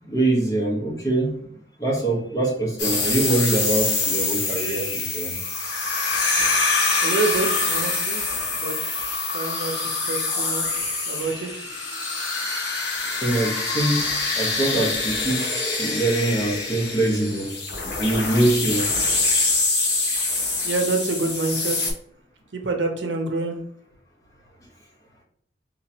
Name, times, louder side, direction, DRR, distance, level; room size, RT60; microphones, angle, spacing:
voice 1, 0.0-1.5 1.8-5.3 13.1-15.4 15.8-17.5 18.0-18.9, right 2 dB, 20° left, -3 dB, 1.1 m, -23 dB
sound 1, 2.8-21.9, left 3 dB, 70° left, 1.2 m, -25 dB
voice 2, 7.0-8.3 8.5-8.8 9.3-11.5 20.6-21.9 22.5-23.6, right 3 dB, 75° right, 3 dB, 0.7 m, -27 dB
3.8 x 2.9 x 2.8 m, 0.66 s
head